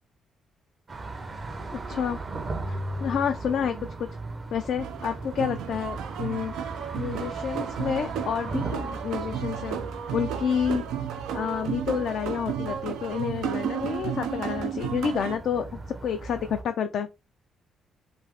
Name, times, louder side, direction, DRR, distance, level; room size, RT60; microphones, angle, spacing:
sound 1, 0.9-16.6, right 2 dB, 35° right, 0.6 m, -38 dB
voice 1, 1.7-2.2 2.7-4.2 4.5-9.8 10.1-10.8 11.3-15.7 16.0-17.1, left 7 dB, 70° left, 0.4 m, -29 dB
sound 2, 4.8-15.4, right 9 dB, 90° right, 0.4 m, -33 dB
2.7 x 2.6 x 3.2 m
cardioid pair, 90°, 0 cm